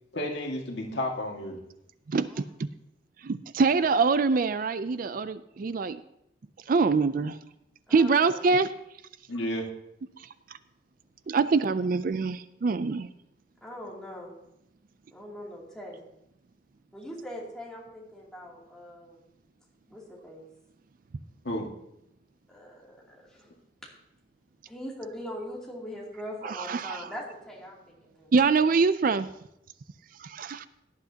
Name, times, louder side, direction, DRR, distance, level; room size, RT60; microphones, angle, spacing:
voice 1, 0.1-1.6 9.3-9.7 21.4-21.7, left 1 dB, 70° left, 0 dB, 1.9 m, -31 dB
voice 2, 2.1-2.7 3.2-6.0 6.7-7.4 7.9-8.7 10.2-10.3 11.3-13.1 26.4-27.1 28.3-29.3 30.2-30.7, right 4 dB, 50° right, 13 dB, 0.4 m, -25 dB
voice 3, 7.9-8.6 13.6-14.4 15.1-16.0 16.9-19.3 19.9-20.5 22.5-23.5 24.7-28.3, equal, 5° left, -5 dB, 2.8 m, -42 dB
17.5 x 10.5 x 2.8 m, 0.80 s
head